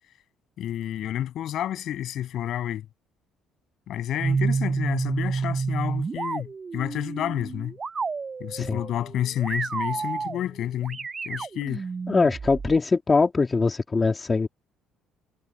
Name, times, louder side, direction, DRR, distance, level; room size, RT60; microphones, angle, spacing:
voice 1, 0.6-2.9 3.9-7.7 8.4-11.8, left 11 dB, 65° left, 7.6 m, -30 dB
sound 1, 4.2-12.8, right 5 dB, 35° right, 5.5 m, -30 dB
voice 2, 12.1-14.5, left 4 dB, 30° left, 2.8 m, -22 dB
supercardioid pair, 70°, 0 cm